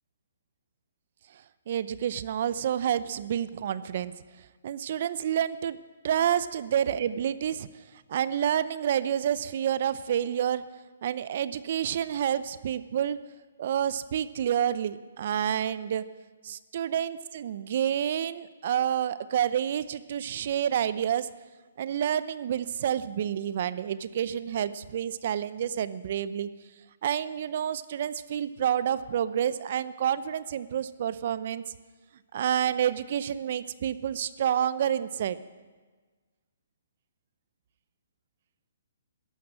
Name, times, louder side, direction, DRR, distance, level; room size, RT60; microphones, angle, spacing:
voice 1, 1.7-4.1 4.6-5.8 6.0-7.7 8.1-10.6 11.0-13.2 13.6-16.0 16.4-21.3 21.8-26.5 27.0-31.6 32.3-35.4, right 9 dB, 50° right, 15 dB, 0.7 m, -29 dB
14.0 x 11.5 x 8.6 m, 1.4 s
hypercardioid pair, 140°, 0 cm